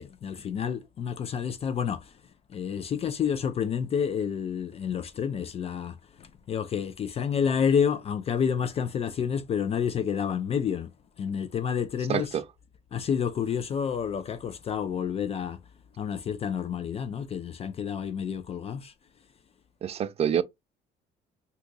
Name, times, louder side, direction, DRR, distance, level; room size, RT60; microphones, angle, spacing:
voice 1, 0.0-2.2 2.5-10.9 11.2-12.4 12.9-15.6 16.0-18.9, left 7 dB, 35° left, 0.3 m, -29 dB
voice 2, 12.1-12.4 19.8-20.4, right 9 dB, 40° right, 0.4 m, -26 dB
2.8 x 2.3 x 3.8 m
cardioid pair, 110°, 17 cm